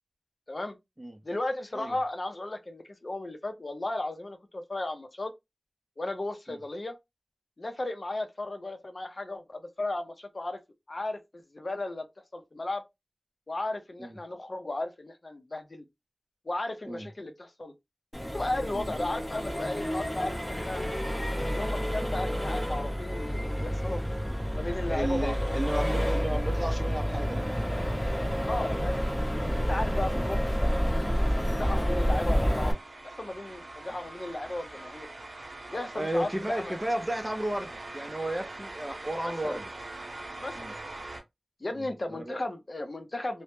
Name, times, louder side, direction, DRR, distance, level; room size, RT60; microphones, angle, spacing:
voice 1, 1.2-5.3 6.0-7.0 7.6-10.6 10.9-12.1 12.3-12.8 13.5-15.8 16.5-17.7 18.3-20.8 21.5-24.0 24.5-25.9 28.5-29.1 29.7-30.8 31.2-32.7 33.2-35.1 35.7-36.8 39.2-39.6 40.4-40.7 41.6-43.4, left 2 dB, 60° left, 0.5 m, -35 dB
Accelerating revving vroom, 18.1-32.7, equal, 10° left, 0.8 m, -29 dB
voice 2, 24.9-27.5 30.1-30.3 35.9-39.7 40.6-40.7 41.7-42.4, right 1 dB, 20° right, 0.4 m, -33 dB
sound 1, 31.1-41.2, right 2 dB, 85° right, 0.5 m, -43 dB
2.0 x 2.0 x 2.9 m
wide cardioid pair, 45°, 0 cm